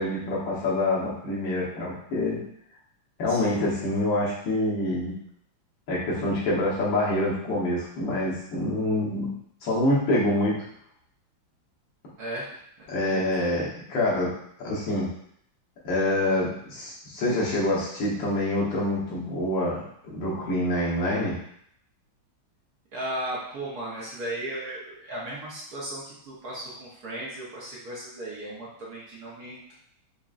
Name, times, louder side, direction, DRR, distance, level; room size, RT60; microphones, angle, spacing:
voice 1, 0.0-2.4 3.2-5.2 5.9-9.3 9.6-10.6 12.9-14.3 14.6-15.1 15.8-21.3, left 1 dB, 70° left, -6 dB, 1.8 m, -26 dB
voice 2, 3.2-3.6 12.2-12.6 13.0-13.5 22.9-29.7, right 1 dB, 60° right, -6 dB, 1.2 m, -36 dB
4.8 x 2.8 x 2.4 m, 0.70 s
omnidirectional pair, 2.2 m